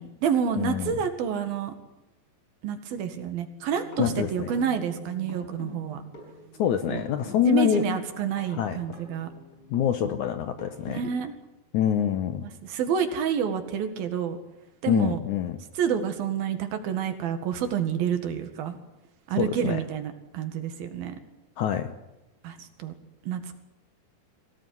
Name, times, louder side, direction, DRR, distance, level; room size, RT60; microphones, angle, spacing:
voice 1, 0.0-1.7 2.6-6.0 6.9-7.0 7.5-9.3 10.9-11.3 12.6-14.4 14.8-15.2 15.8-18.8 19.3-21.2 22.4-22.9 23.2-23.6, right 7 dB, 80° right, 7 dB, 3.7 m, -28 dB
voice 2, 0.6-1.0 4.0-4.5 6.6-7.9 8.5-8.8 9.7-11.0 11.7-12.5 14.9-15.6 19.4-19.8 21.6-21.9, left 9 dB, 70° left, 9 dB, 2.1 m, -25 dB
sound 1, 3.7-11.0, right 1 dB, 40° left, 6.5 m, -45 dB
23.0 x 17.5 x 9.6 m, 0.97 s
omnidirectional pair, 4.2 m